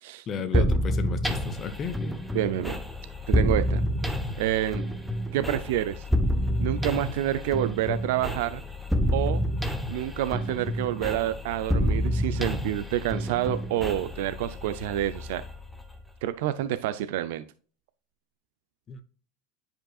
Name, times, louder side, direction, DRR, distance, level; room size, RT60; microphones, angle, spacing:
voice 1, 0.3-2.2 18.9-19.0, left 6 dB, 30° left, 0.9 m, -34 dB
sound 1, 0.5-16.2, equal, ahead, 1.0 m, -29 dB
voice 2, 2.3-2.8 3.3-3.8 4.4-4.9 5.3-6.0 6.6-8.6 9.1-9.4 9.9-15.4 16.2-17.4, right 12 dB, 75° right, 0.5 m, -28 dB
10.0 x 5.1 x 2.4 m
supercardioid pair, 125°, 0 cm